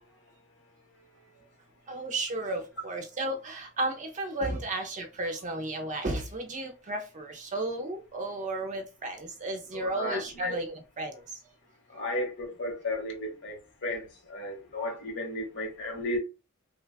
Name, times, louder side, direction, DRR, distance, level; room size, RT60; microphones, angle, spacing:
voice 1, 1.9-11.2, right 2 dB, 35° right, 0.5 m, -33 dB
voice 2, 9.7-10.5 11.9-16.2, left 1 dB, 60° left, 1.1 m, -34 dB
3.2 x 2.3 x 2.3 m
head